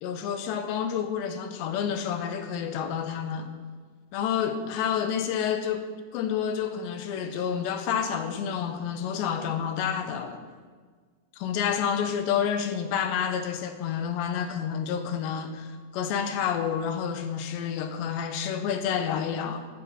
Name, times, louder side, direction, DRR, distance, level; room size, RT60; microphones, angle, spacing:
voice 1, 0.0-3.5 4.1-5.9 6.1-10.4 11.4-19.7, left 8 dB, 80° left, 8 dB, 3.2 m, -29 dB
11.5 x 9.7 x 8.9 m, 1.5 s
omnidirectional pair, 5.0 m